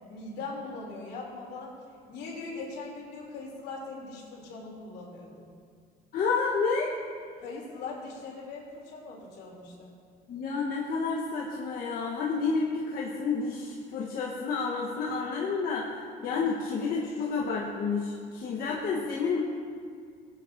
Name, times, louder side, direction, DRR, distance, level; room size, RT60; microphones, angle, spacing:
voice 1, 0.1-1.7 2.1-5.4 7.4-9.9 16.3-16.4 16.7-16.8, left 3 dB, 80° left, -3 dB, 3.0 m, -40 dB
voice 2, 6.1-7.0 10.3-15.9 16.2-19.4, left 4 dB, 60° left, -3 dB, 1.1 m, -30 dB
18.5 x 8.8 x 2.6 m, 2.1 s
cardioid pair, 110°, 17 cm